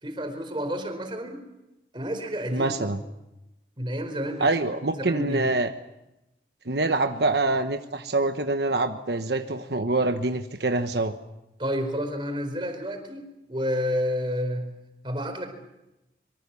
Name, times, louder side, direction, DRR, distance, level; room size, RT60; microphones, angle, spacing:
voice 1, 0.0-1.4 1.9-2.7 3.8-4.5 5.0-5.4 11.6-13.2 13.5-14.6 15.0-15.5, equal, 30° right, 5 dB, 4.6 m, -30 dB
voice 2, 2.5-3.0 4.4-5.7 6.7-11.1, right 2 dB, 75° right, 6 dB, 1.2 m, -25 dB
25.5 x 24.0 x 7.1 m, 0.94 s
head